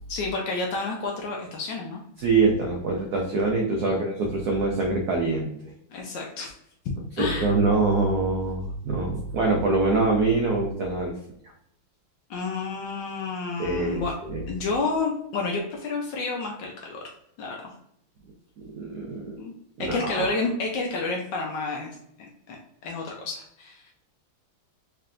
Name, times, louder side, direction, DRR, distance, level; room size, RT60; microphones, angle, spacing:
voice 1, 0.1-2.0 3.9-4.1 5.9-6.5 7.2-7.5 12.3-14.1 14.5-17.0 17.4-17.7 19.4-19.5 19.8-23.9, left 3 dB, 70° left, 0 dB, 1.1 m, -30 dB
voice 2, 2.2-5.7 7.2-11.1 13.6-14.4 18.6-19.4 19.8-20.3, right 3 dB, 80° right, 0 dB, 0.8 m, -24 dB
3.7 x 3.3 x 2.5 m, 0.73 s
omnidirectional pair, 2.4 m